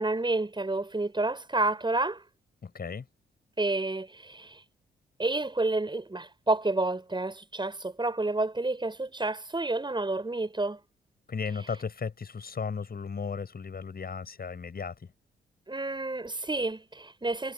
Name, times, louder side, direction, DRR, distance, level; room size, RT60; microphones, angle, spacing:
voice 1, 0.0-2.2 3.6-4.6 5.2-10.8 15.7-17.5, right 2 dB, 20° right, 6.9 m, -29 dB
voice 2, 2.6-3.1 11.3-15.1, left 5 dB, 45° left, 7.4 m, -35 dB
hypercardioid pair, 40°, 21 cm